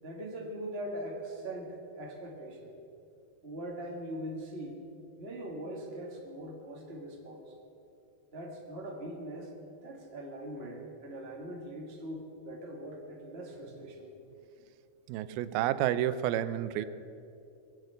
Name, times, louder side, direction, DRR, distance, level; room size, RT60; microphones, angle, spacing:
voice 1, 0.0-2.7 3.4-4.8 5.2-7.6 8.3-9.5 9.8-14.1 16.3-16.8, right 1 dB, 30° right, 0 dB, 1.2 m, -41 dB
voice 2, 15.1-16.9, right 12 dB, 85° right, 14 dB, 2.5 m, -30 dB
22.0 x 8.1 x 8.1 m, 2.6 s
omnidirectional pair, 4.3 m